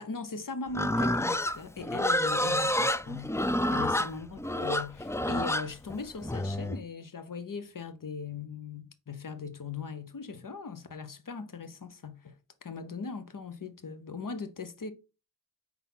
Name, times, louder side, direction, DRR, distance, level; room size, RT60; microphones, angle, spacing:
voice 1, 0.0-3.3 3.7-14.9, left 4 dB, 60° left, 0.9 m, -39 dB
Livestock farm animals working animals, 0.7-6.8, left 1 dB, 10° left, 0.3 m, -28 dB
4.4 x 4.0 x 5.5 m
wide cardioid pair, 50°, 37 cm